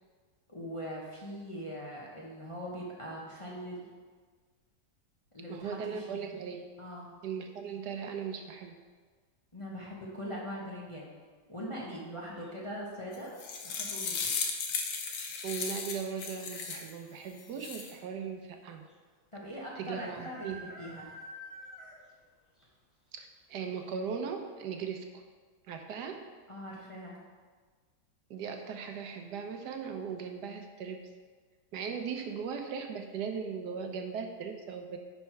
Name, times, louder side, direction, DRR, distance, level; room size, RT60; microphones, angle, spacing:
voice 1, 0.5-3.9 5.3-6.3 6.8-7.1 9.5-11.1 11.5-13.3 13.6-14.3 19.3-21.1 26.5-27.2, equal, 20° left, -4 dB, 1.0 m, -41 dB
voice 2, 5.5-6.7 7.2-8.7 15.4-18.8 19.8-20.7 23.1-25.2 25.7-26.2 28.3-31.0 31.7-35.0, right 6 dB, 75° right, 4 dB, 1.3 m, -38 dB
sound 1, 12.4-12.8 14.6-15.0 15.3-15.4 15.6-16.2 16.9-17.0 17.2-17.3 18.9-19.0 19.9-22.2 22.6-22.7 23.1-23.2 23.7-23.8, equal, ahead, 2.3 m, -48 dB
sound 2, 13.1-16.9 17.4-17.9, left 5 dB, 80° left, 1.5 m, -35 dB
10.5 x 4.3 x 4.5 m, 1.5 s
omnidirectional pair, 1.9 m